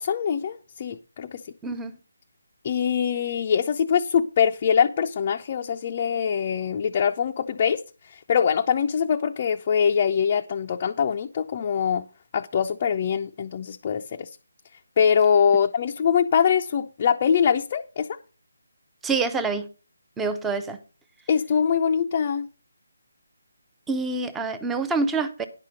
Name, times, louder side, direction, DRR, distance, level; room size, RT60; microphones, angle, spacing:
voice 1, 0.0-1.4 2.6-7.8 8.1-12.0 12.3-14.3 15.0-18.1 21.3-22.5, left 7 dB, 30° left, 0.6 m, -23 dB
voice 2, 1.6-1.9 19.0-19.7 20.2-20.8 23.9-25.5, right 4 dB, 5° right, 0.7 m, -26 dB
10.5 x 5.8 x 6.3 m
figure-of-eight pair, 165°, 0 cm